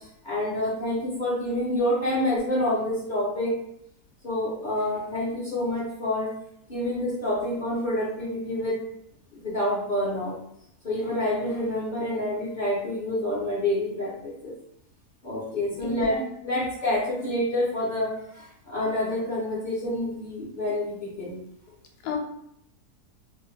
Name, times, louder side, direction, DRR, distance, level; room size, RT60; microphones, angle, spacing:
voice 1, 0.2-3.5 4.2-6.3 6.7-8.7 9.3-10.4 10.8-14.5 15.2-16.2 16.4-18.1 18.3-21.4, left 1 dB, 40° left, -7 dB, 0.7 m, -27 dB
voice 2, 15.5-16.6 22.0-22.2, left 4 dB, 90° left, 2 dB, 1.1 m, -35 dB
2.7 x 2.3 x 3.1 m, 0.75 s
omnidirectional pair, 1.7 m